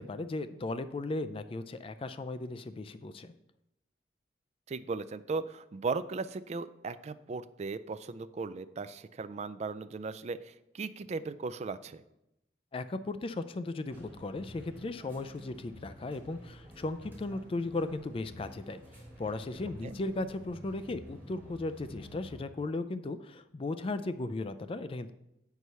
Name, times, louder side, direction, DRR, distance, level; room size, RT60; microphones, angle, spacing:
voice 1, 0.0-3.3 12.7-18.8 19.2-25.1, left 2 dB, 30° left, 11 dB, 0.4 m, -36 dB
voice 2, 4.7-12.0 19.8-20.0, right 4 dB, 40° right, 13 dB, 0.3 m, -37 dB
sound 1, 13.9-22.4, equal, 10° right, 2.5 m, -50 dB
8.0 x 4.7 x 5.5 m, 0.86 s
head